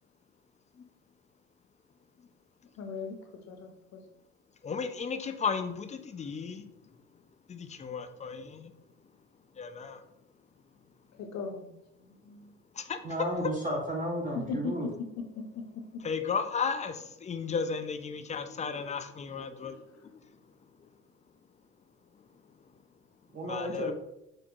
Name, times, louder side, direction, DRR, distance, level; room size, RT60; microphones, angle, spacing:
voice 1, 2.8-3.2 3.5-4.0 11.2-12.5 14.5-14.8 15.3-15.4, left 5 dB, 55° left, 5 dB, 0.7 m, -38 dB
voice 2, 4.6-6.7 7.5-8.7 9.6-10.0 12.8-13.0 16.0-19.8 23.5-23.9, left 5 dB, 25° left, 8 dB, 0.3 m, -34 dB
voice 3, 13.0-14.9 23.3-23.9, right 1 dB, 25° right, 0 dB, 0.6 m, -33 dB
4.6 x 2.1 x 2.6 m, 0.87 s
hypercardioid pair, 55°, 32 cm